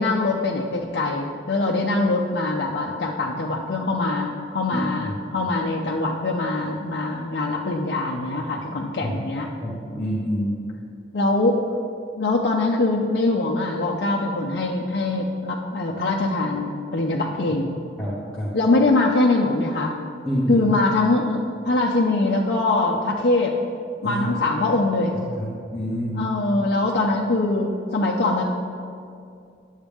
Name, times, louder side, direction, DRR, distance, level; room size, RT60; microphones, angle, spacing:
voice 1, 0.0-9.5 11.1-11.6 12.2-17.8 18.5-20.0 20.5-23.5 24.0-25.1 26.2-28.4, left 2 dB, 60° left, -2 dB, 0.6 m, -23 dB
voice 2, 4.7-5.5 9.0-9.2 9.6-10.6 18.0-18.6 20.2-20.7 24.0-24.3 25.1-26.3, equal, 5° left, -9 dB, 1.1 m, -28 dB
10.5 x 7.2 x 3.5 m, 2.4 s
head